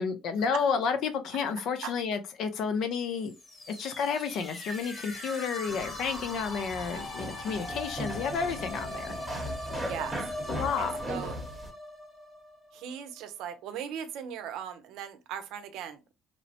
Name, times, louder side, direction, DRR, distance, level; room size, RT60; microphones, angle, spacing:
voice 1, 0.0-3.3 3.7-9.1 10.5-10.9, left 6 dB, 65° left, 0.5 m, -31 dB
sound 1, 3.2-13.0, left 1 dB, 25° left, 0.8 m, -40 dB
sound 2, 5.7-11.7, equal, 5° right, 1.0 m, -38 dB
voice 2, 9.8-10.2 10.8-11.4 12.7-16.1, right 8 dB, 75° right, 0.5 m, -39 dB
3.0 x 2.0 x 2.7 m
cardioid pair, 115°, 0 cm